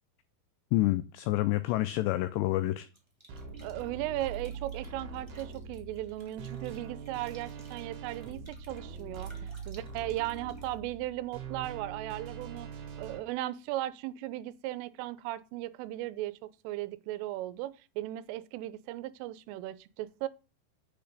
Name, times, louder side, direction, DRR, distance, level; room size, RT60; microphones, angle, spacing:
voice 1, 0.7-2.9, left 17 dB, 90° left, 2.4 m, -28 dB
sound 1, 2.9-10.8, right 1 dB, 15° right, 1.1 m, -60 dB
sound 2, 3.3-13.2, right 5 dB, 60° right, 3.5 m, -43 dB
voice 2, 3.6-12.7 13.0-20.3, right 15 dB, 90° right, 3.3 m, -37 dB
8.3 x 6.7 x 6.6 m
omnidirectional pair, 5.6 m